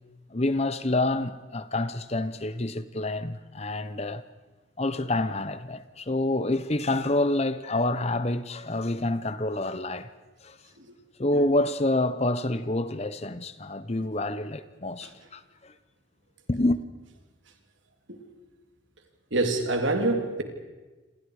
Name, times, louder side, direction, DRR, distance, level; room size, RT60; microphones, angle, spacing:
voice 1, 0.3-4.2 4.8-10.1 10.4-10.6 11.2-15.7 16.5-16.8, left 2 dB, 30° left, 0.9 m, -27 dB
voice 2, 19.3-20.4, right 2 dB, 70° right, 3.3 m, -25 dB
29.0 x 27.0 x 5.0 m
head